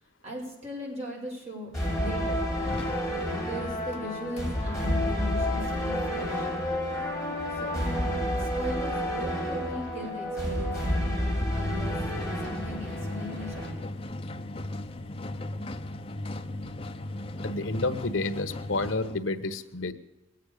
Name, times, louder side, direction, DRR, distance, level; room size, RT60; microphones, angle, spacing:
voice 1, 0.2-1.7 2.0-2.4 3.3-6.5 7.6-11.2 11.5-13.9, left 1 dB, 35° right, -3 dB, 6.7 m, -39 dB
sound 1, 1.7-13.7, equal, ahead, 7.5 m, -30 dB
sound 2, 2.7-4.1 4.4-4.5 10.9-19.2, left 1 dB, 30° left, 0.8 m, -37 dB
voice 2, 17.4-19.9, left 2 dB, 80° left, 10 dB, 1.3 m, -30 dB
22.0 x 9.3 x 6.6 m, 0.97 s
head